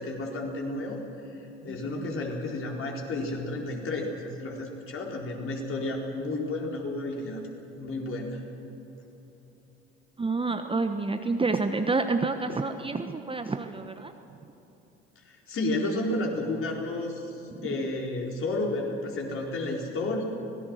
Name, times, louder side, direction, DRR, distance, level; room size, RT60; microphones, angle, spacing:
voice 1, 0.0-7.4 7.8-8.4 15.2-20.2, left 2 dB, 40° left, 0 dB, 4.4 m, -32 dB
voice 2, 10.2-14.1 17.5-17.7, right 3 dB, 15° right, 7 dB, 1.2 m, -28 dB
24.5 x 18.0 x 6.5 m, 3.0 s
figure-of-eight pair, 60°, 32 cm